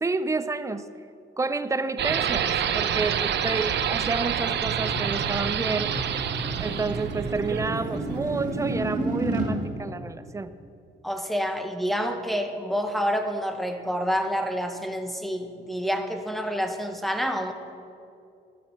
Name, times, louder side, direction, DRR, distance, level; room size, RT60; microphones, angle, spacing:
voice 1, 0.0-0.8 1.4-6.0 6.6-10.5, right 3 dB, 15° right, 13 dB, 0.5 m, -29 dB
sound 1, 2.0-8.6, right 8 dB, 60° right, 0.7 m, -28 dB
sound 2, 3.6-9.6, right 2 dB, 40° right, 2.1 m, -32 dB
voice 2, 11.0-17.5, equal, ahead, 5 dB, 0.9 m, -28 dB
11.5 x 7.2 x 5.8 m, 2.5 s
cardioid pair, 90°, 20 cm